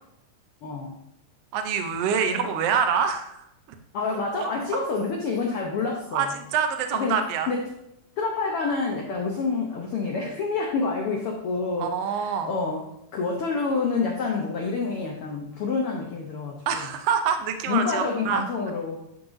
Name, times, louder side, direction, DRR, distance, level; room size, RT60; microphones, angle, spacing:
voice 1, 0.6-1.0 2.3-2.5 3.9-6.3 6.9-7.2 7.5-7.6 8.2-12.8 13.1-16.9 17.7-19.0, left 4 dB, 80° left, 0 dB, 1.2 m, -28 dB
voice 2, 1.5-3.3 6.1-7.5 11.8-12.5 16.7-18.4, right 7 dB, 85° right, 7 dB, 1.3 m, -25 dB
11.5 x 3.9 x 2.6 m, 0.80 s
omnidirectional pair, 3.6 m